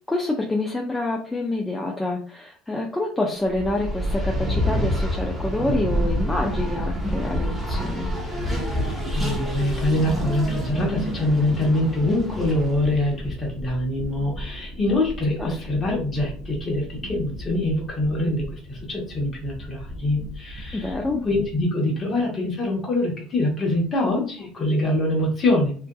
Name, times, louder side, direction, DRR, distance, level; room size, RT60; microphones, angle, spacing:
voice 1, 0.1-8.1 15.4-15.6 20.7-21.2, left 2 dB, 10° left, -1 dB, 0.4 m, -27 dB
Race car auto racing, 3.4-13.1, equal, 10° right, 0.8 m, -31 dB
sound 1, 3.6-21.6, equal, 45° right, 0.5 m, -31 dB
voice 2, 8.8-25.7, left 1 dB, 25° left, -1 dB, 1.0 m, -24 dB
2.5 x 2.4 x 2.3 m, 0.42 s
cardioid pair, 125°, 0 cm